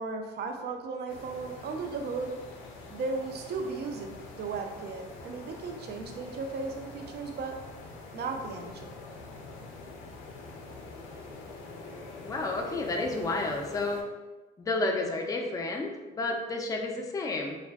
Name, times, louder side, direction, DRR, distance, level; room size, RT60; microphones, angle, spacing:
voice 1, 0.0-2.3 2.9-7.6 8.1-9.0, right 4 dB, 55° right, 4 dB, 0.4 m, -36 dB
sound 1, 1.1-14.0, left 3 dB, 90° left, 0.4 m, -45 dB
voice 2, 12.2-14.0 14.6-17.6, left 2 dB, 20° left, 1 dB, 0.3 m, -31 dB
2.5 x 2.3 x 2.2 m, 1.2 s
cardioid pair, 90°, 20 cm